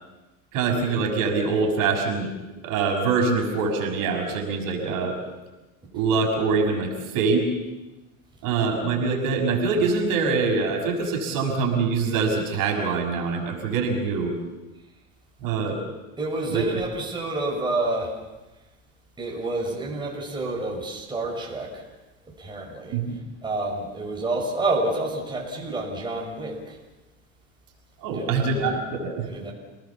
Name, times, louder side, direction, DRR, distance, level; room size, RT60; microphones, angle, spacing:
voice 1, 0.5-2.3 2.6-5.2 5.9-7.5 8.4-14.3 15.4-15.8 16.5-16.8 22.9-23.2 28.0-29.3, right 4 dB, 50° right, 1 dB, 6.2 m, -24 dB
voice 2, 16.2-18.2 19.2-21.8 22.4-22.9 23.4-26.8 28.1-28.7 29.2-29.5, right 2 dB, 10° right, -2 dB, 6.1 m, -29 dB
28.5 x 19.0 x 7.2 m, 1.1 s
supercardioid pair, 115°, 42 cm